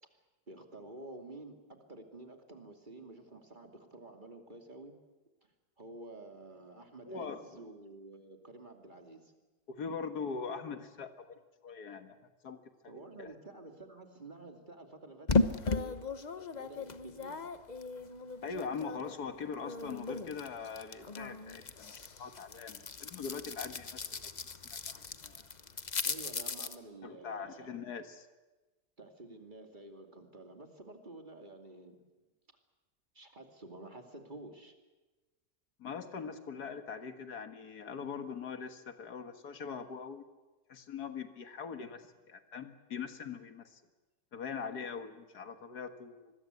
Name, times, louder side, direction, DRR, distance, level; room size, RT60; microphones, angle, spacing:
voice 1, 0.5-1.6 1.9-4.9 5.8-9.3 12.9-15.4 15.7-16.0 16.3-17.5 26.0-27.7 29.0-32.0 33.1-34.7, right 2 dB, 30° right, 4 dB, 2.7 m, -50 dB
voice 2, 7.1-7.6 9.7-12.2 12.4-12.6 13.2-13.3 18.4-21.9 22.2-24.3 24.6-25.5 27.0-28.3 35.8-40.2 40.7-43.8 44.3-46.3, left 5 dB, 90° left, 8 dB, 2.1 m, -42 dB
sound 1, 15.3-19.2 19.5-26.8, left 3 dB, 35° left, 0.9 m, -36 dB
25.5 x 21.0 x 8.2 m, 1.2 s
omnidirectional pair, 1.6 m